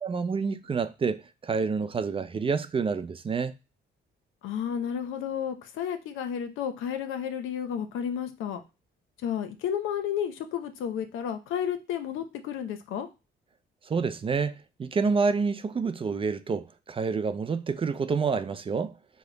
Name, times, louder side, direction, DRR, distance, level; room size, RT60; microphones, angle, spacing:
voice 1, 0.0-3.5 13.9-18.9, right 5 dB, 30° right, 0.4 m, -28 dB
voice 2, 4.4-8.6 9.2-13.1, left 8 dB, 90° left, 0.7 m, -32 dB
4.9 x 2.1 x 3.8 m
cardioid pair, 90°, 20 cm